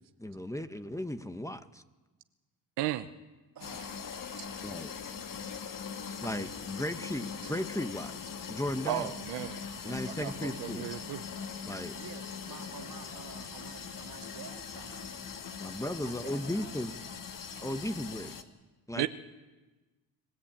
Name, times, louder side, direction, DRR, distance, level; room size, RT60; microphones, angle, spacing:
voice 1, 0.2-1.8 4.6-4.9 6.2-9.1 9.8-10.9 11.6-12.0 15.6-16.9 17.6-18.3 18.9-19.1, left 1 dB, 10° left, 10 dB, 1.1 m, -36 dB
voice 2, 2.8-3.1 8.8-11.2 19.0-19.1, right 14 dB, 85° right, 10 dB, 0.9 m, -35 dB
sound 1, 3.6-18.4, left 6 dB, 55° left, 1.7 m, -41 dB
voice 3, 3.6-4.7 12.0-15.2 16.0-16.8, right 8 dB, 60° right, 5 dB, 2.1 m, -50 dB
26.0 x 14.0 x 8.8 m, 1.2 s
cardioid pair, 75°, 40 cm